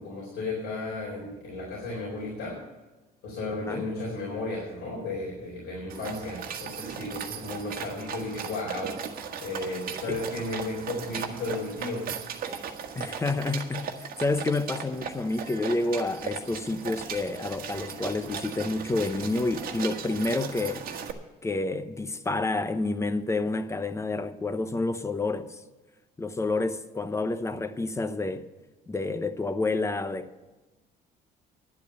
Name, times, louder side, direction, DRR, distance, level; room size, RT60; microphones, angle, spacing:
voice 1, 0.0-2.6 3.2-8.9 9.4-12.1, left 2 dB, 85° left, 4.2 m, -34 dB
sound 1, 5.9-21.1, right 7 dB, 60° right, 1.4 m, -37 dB
voice 2, 12.9-20.8 21.4-25.6 26.2-28.4 28.9-30.4, left 2 dB, 15° left, 0.9 m, -29 dB
11.0 x 8.2 x 8.0 m
cardioid pair, 110°, 17 cm